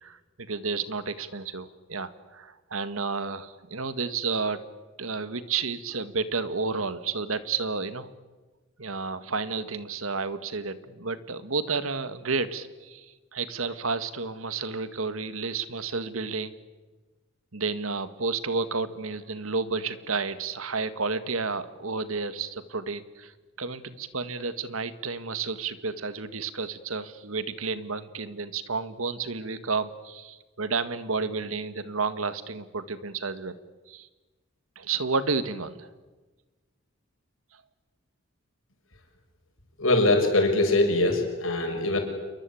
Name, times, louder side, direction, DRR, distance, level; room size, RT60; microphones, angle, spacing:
voice 1, 0.0-4.6 5.0-8.1 8.8-16.5 17.5-23.3 23.6-33.6 33.9-34.1 34.8-35.9, right 4 dB, 80° right, 12 dB, 1.8 m, -31 dB
voice 2, 39.8-42.0, left 2 dB, 70° left, 4 dB, 6.6 m, -22 dB
28.5 x 22.5 x 8.6 m, 1.3 s
head